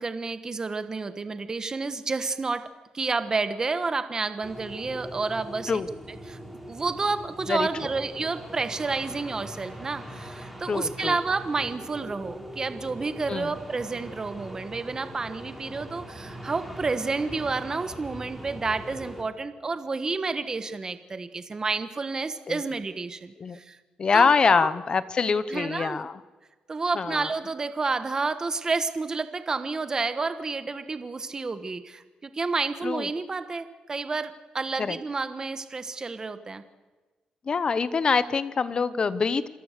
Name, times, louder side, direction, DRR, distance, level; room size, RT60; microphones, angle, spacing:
voice 1, 0.0-2.6 2.9-5.8 6.1-6.4 6.7-23.8 24.1-24.7 25.5-26.0 26.7-36.6, right 4 dB, 30° right, 10 dB, 1.3 m, -30 dB
sound 1, 4.4-19.2, equal, ahead, 4.5 m, -41 dB
voice 2, 10.7-11.2 13.3-13.5 22.5-22.6 23.4-23.6 24.0-26.2 26.9-27.3 32.8-33.1 34.8-35.0 37.5-39.5, left 5 dB, 40° left, 15 dB, 0.9 m, -24 dB
27.0 x 18.0 x 6.7 m, 1.2 s
cardioid pair, 120°, 2 cm